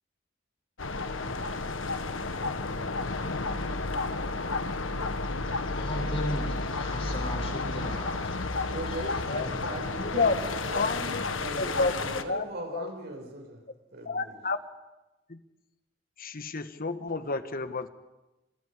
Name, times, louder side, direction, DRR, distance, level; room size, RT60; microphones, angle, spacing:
sound 1, 0.8-12.2, left 3 dB, 85° left, 1.6 m, -32 dB
voice 1, 5.7-8.3 8.9-9.0, left 1 dB, 30° left, 0 dB, 7.7 m, -36 dB
voice 2, 8.5-13.6 13.9-14.4, right 2 dB, 60° right, 3 dB, 5.9 m, -39 dB
voice 3, 10.0-10.3 10.7-11.2 11.6-11.9 12.3-12.4 12.7-12.9 14.1-14.6 15.3-15.4 16.2-17.9, left 3 dB, 50° left, 10 dB, 1.4 m, -29 dB
28.0 x 27.5 x 5.1 m, 1.0 s
head